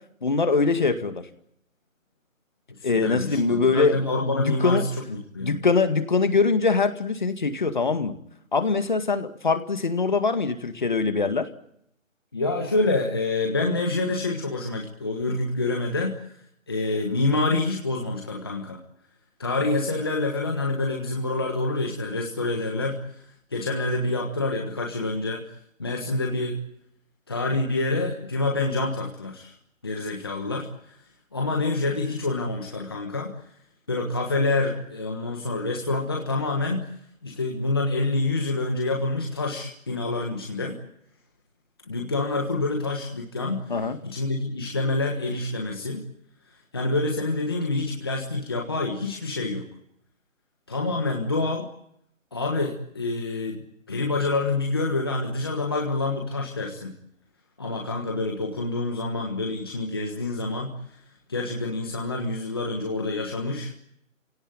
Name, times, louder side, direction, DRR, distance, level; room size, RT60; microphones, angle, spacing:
voice 1, 0.2-1.2 2.8-4.9 5.4-8.2 8.5-11.5 43.7-44.0, left 4 dB, 35° left, 8 dB, 2.0 m, -23 dB
voice 2, 2.8-4.8 5.1-5.6 12.3-16.2 16.7-18.8 19.4-23.0 23.5-25.4 25.8-26.6 27.3-29.5 29.8-31.0 31.3-33.3 33.9-36.9 37.2-40.8 41.9-43.7 44.0-46.0 46.7-49.7 50.7-51.7 52.3-53.6 53.9-56.9 57.6-60.7 61.3-63.7, left 2 dB, 20° left, 0 dB, 1.4 m, -27 dB
30.0 x 17.5 x 9.1 m, 0.76 s
hypercardioid pair, 175°, 40 cm